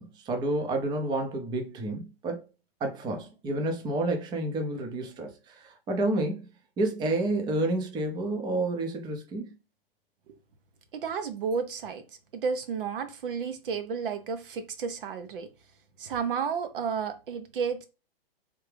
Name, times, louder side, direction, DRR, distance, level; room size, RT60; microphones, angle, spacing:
voice 1, 0.0-2.4 2.8-6.5 6.8-9.5, right 2 dB, 15° right, 0.6 m, -30 dB
voice 2, 10.9-12.0 12.3-15.5 16.0-17.9, right 6 dB, 60° right, 0.7 m, -32 dB
3.5 x 2.8 x 3.3 m
hypercardioid pair, 130°, 30 cm